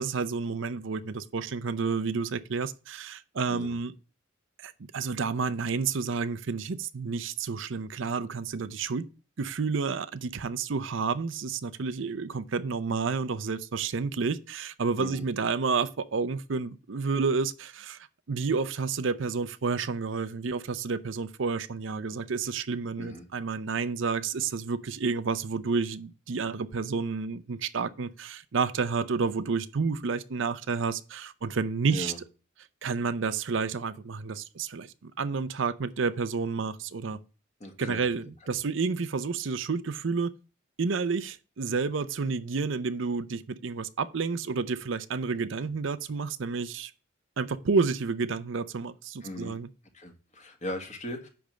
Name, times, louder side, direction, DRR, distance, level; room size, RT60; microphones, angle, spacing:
voice 1, 0.0-3.9 4.6-9.0 9.4-32.1 32.8-37.2 37.8-40.3 40.8-46.9 47.4-49.7, right 4 dB, 70° right, 0.6 m, -30 dB
voice 2, 37.6-38.0 45.6-45.7 49.2-49.6 49.9-51.3, left 1 dB, 35° left, 1.7 m, -38 dB
10.0 x 3.5 x 6.3 m
head